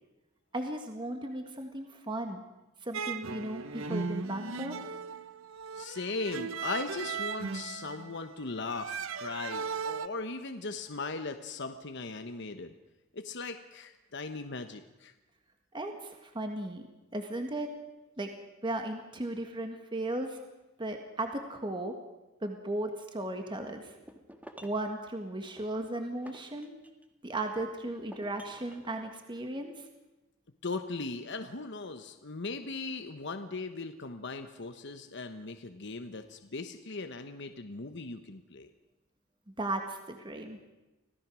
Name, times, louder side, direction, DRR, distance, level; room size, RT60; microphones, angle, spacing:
voice 1, 0.5-2.4 2.8-4.8 15.7-16.8 17.1-17.7 18.2-18.3 18.6-20.4 20.8-22.0 22.4-23.9 24.6-26.7 27.2-29.9 39.5-40.6, right 1 dB, 25° right, 5 dB, 1.7 m, -36 dB
sound 1, 2.9-10.1, right 5 dB, 85° right, 0.8 m, -37 dB
voice 2, 5.7-12.7 13.1-15.1 30.6-38.7, left 3 dB, 60° left, 7 dB, 1.1 m, -38 dB
sound 2, 23.9-24.9 25.6-27.1 27.6-28.9, right 1 dB, 10° right, 1.7 m, -52 dB
26.0 x 17.0 x 6.3 m, 1.1 s
head